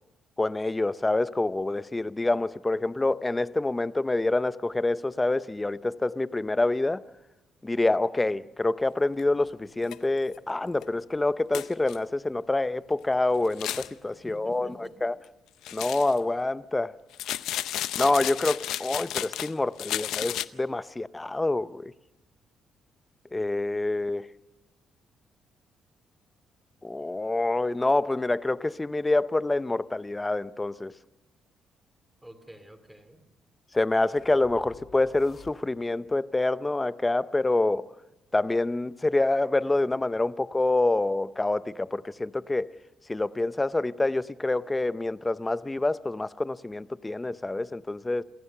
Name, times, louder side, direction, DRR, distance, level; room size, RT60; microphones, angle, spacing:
voice 1, 0.4-7.0 7.6-14.7 15.0-15.1 15.7-17.0 18.0-21.9 23.3-24.3 26.8-30.9 33.7-37.9 38.3-42.7 43.1-48.2, left 2 dB, 15° left, 0.6 m, -27 dB
sound 1, 9.2-9.3 9.8-10.0 10.3-10.4 10.8-10.9 11.5-12.0 13.4-13.9 15.6-16.2 17.1-19.5 19.8-20.4, left 12 dB, 85° left, 0.6 m, -32 dB
voice 2, 14.0-15.1 32.2-33.2, right 1 dB, 5° right, 2.6 m, -47 dB
sound 2, 34.2-36.0, left 5 dB, 50° left, 1.6 m, -51 dB
27.5 x 15.5 x 6.7 m
cardioid pair, 90°, 0 cm